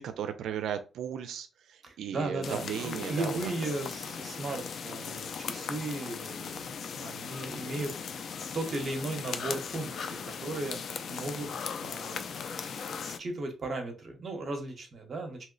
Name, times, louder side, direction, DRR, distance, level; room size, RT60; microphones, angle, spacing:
voice 1, 0.0-3.4, right 9 dB, 85° right, 9 dB, 0.4 m, -36 dB
voice 2, 1.8-8.2 8.5-10.8 11.1-11.5 11.8-12.2 12.8-15.5, right 2 dB, 40° right, 4 dB, 0.8 m, -36 dB
sound 1, 2.4-13.2, left 6 dB, 55° left, 0.3 m, -38 dB
2.9 x 2.0 x 3.8 m, 0.31 s
cardioid pair, 135°, 0 cm